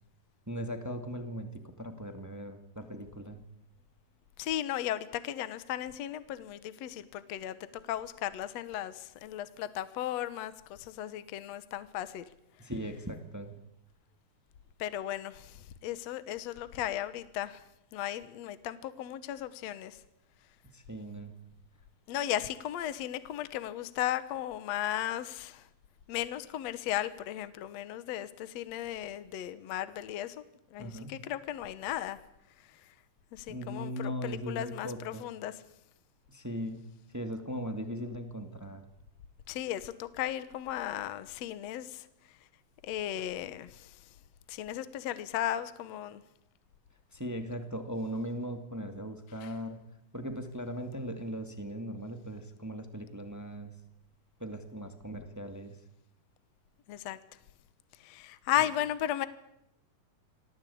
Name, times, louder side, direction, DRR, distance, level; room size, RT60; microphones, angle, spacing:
voice 1, 0.5-3.4 12.6-13.5 20.7-21.3 30.8-31.2 33.5-35.3 36.3-36.8 37.1-38.8 47.1-49.8 50.1-53.7 54.4-55.7, equal, 10° right, 6 dB, 1.2 m, -39 dB
voice 2, 4.4-12.2 14.8-17.6 17.9-20.0 22.1-25.6 26.1-30.4 30.7-32.2 33.3-35.5 39.5-42.1 42.8-43.9 44.5-46.2 49.4-49.5 56.9-57.2 58.0-59.3, left 12 dB, 60° left, 13 dB, 1.9 m, -35 dB
26.5 x 18.5 x 8.6 m, 0.82 s
omnidirectional pair, 4.1 m